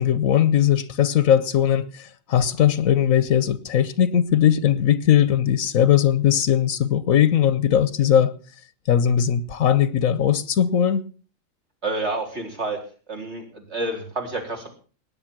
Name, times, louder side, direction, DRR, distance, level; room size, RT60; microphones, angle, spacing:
voice 1, 0.0-8.3 8.9-11.0, left 9 dB, 85° left, 1.4 m, -19 dB
voice 2, 11.8-12.8 13.1-14.7, right 2 dB, 55° right, 4.1 m, -29 dB
18.5 x 10.0 x 6.1 m
omnidirectional pair, 1.4 m